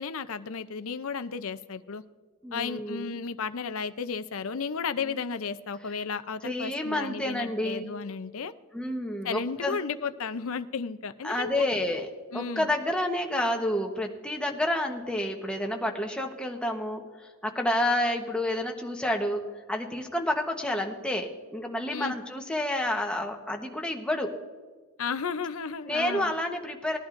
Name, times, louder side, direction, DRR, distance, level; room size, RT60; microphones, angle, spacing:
voice 1, 0.0-2.0 2.5-8.5 9.2-11.6 12.3-12.7 21.9-22.1 25.0-26.3, left 5 dB, 65° left, 11 dB, 0.6 m, -33 dB
voice 2, 2.4-3.2 5.0-5.2 6.4-7.8 8.7-9.8 11.2-12.1 12.3-19.4 19.7-24.3 25.9-27.0, left 1 dB, 5° left, 2 dB, 1.1 m, -29 dB
20.5 x 11.5 x 2.6 m, 1.4 s
head